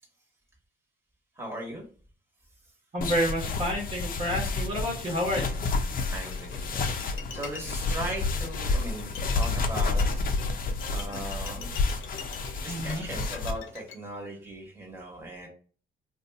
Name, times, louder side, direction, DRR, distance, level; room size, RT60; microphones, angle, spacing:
voice 1, 1.4-1.8 6.1-10.2 10.9-11.8 12.6-15.5, right 1 dB, 10° right, -1 dB, 1.3 m, -38 dB
voice 2, 2.9-5.6 12.7-13.0, equal, 30° right, -1 dB, 1.3 m, -29 dB
sound 1, 3.0-13.5, left 3 dB, 45° left, 0.5 m, -30 dB
Bowed string instrument, 6.2-13.9, left 6 dB, 85° left, 0.7 m, -44 dB
2.6 x 2.4 x 4.0 m, 0.41 s
cardioid pair, 90°, 20 cm